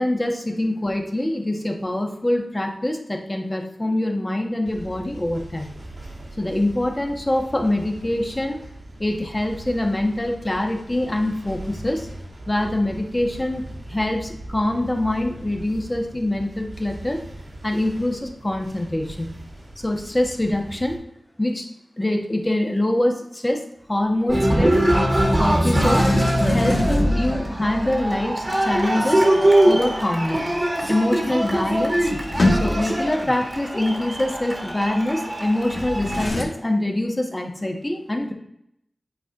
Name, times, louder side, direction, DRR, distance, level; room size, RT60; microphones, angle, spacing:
voice 1, 0.0-5.7 6.4-8.6 9.0-12.1 12.5-13.6 13.9-17.2 17.6-19.3 19.8-21.0 21.4-21.7 22.0-23.6 23.9-24.8 25.4-26.1 26.4-29.3 29.6-30.4 30.9-31.9 32.5-38.3, left 1 dB, 25° left, 2 dB, 1.2 m, -24 dB
sound 1, 4.6-21.0, right 1 dB, 70° right, 1.9 m, -40 dB
Cheering, 24.3-36.3, right 1 dB, 40° right, 1.6 m, -22 dB
Sliding door, 25.7-27.6 31.2-31.3 31.5-33.1 35.7-36.4, left 1 dB, 70° left, 1.2 m, -25 dB
9.0 x 4.3 x 2.5 m, 0.77 s
cardioid pair, 45°, 0 cm